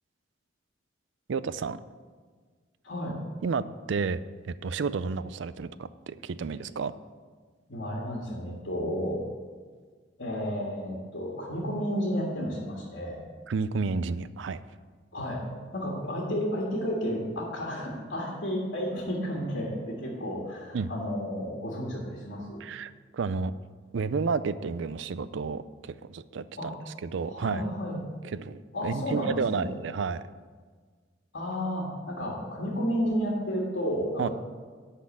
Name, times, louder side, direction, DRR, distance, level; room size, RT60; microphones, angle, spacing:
voice 1, 1.3-1.8 3.4-3.6 3.9-6.9 13.5-14.6 20.7-20.9 22.6-23.5 23.9-26.7 27.0-27.7 28.3-30.2 34.2-34.3, right 5 dB, 70° right, 15 dB, 0.4 m, -31 dB
voice 2, 2.8-3.2 7.7-9.2 10.2-13.2 15.1-15.4 15.7-22.7 26.6-26.8 27.2-28.0 28.7-29.7 31.3-34.3, equal, 70° left, -3 dB, 1.7 m, -32 dB
11.0 x 4.2 x 7.5 m, 1.5 s
head